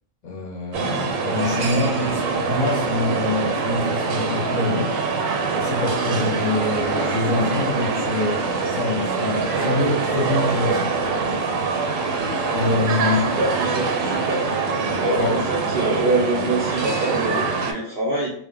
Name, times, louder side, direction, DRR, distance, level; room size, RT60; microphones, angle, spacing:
voice 1, 0.2-5.0 5.6-11.0 12.5-13.3 15.2-15.4, left 3 dB, 45° left, -2 dB, 0.6 m, -25 dB
sound 1, 0.7-17.7, right 4 dB, 85° right, 1.0 m, -24 dB
voice 2, 13.4-14.5 15.0-18.3, right 2 dB, 60° right, -3 dB, 0.6 m, -25 dB
2.4 x 2.1 x 3.7 m, 0.66 s
omnidirectional pair, 1.4 m